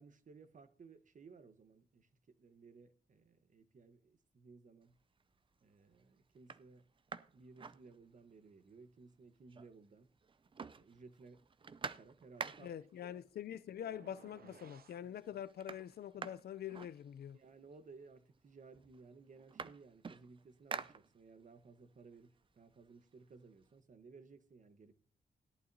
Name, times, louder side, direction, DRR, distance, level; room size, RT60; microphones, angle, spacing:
voice 1, 0.0-5.0 5.6-6.9 7.3-10.1 10.7-12.7 13.0-13.2 15.0-15.1 17.3-24.9, right 4 dB, 50° right, 1.1 m, -59 dB
sound 1, 5.0-5.4 5.9-6.0 6.4-8.4 8.8-8.9 9.1-10.0 10.2-13.0 13.9-14.0 14.4-14.9 15.1-17.5 18.3-18.4 18.7-21.6 22.0-23.7, right 5 dB, 30° right, 0.4 m, -49 dB
voice 2, 12.6-17.4, left 10 dB, 75° left, 0.4 m, -45 dB
sound 2, 13.8-15.1, right 6 dB, 65° right, 0.7 m, -60 dB
17.0 x 11.5 x 2.7 m
wide cardioid pair, 105°, 16 cm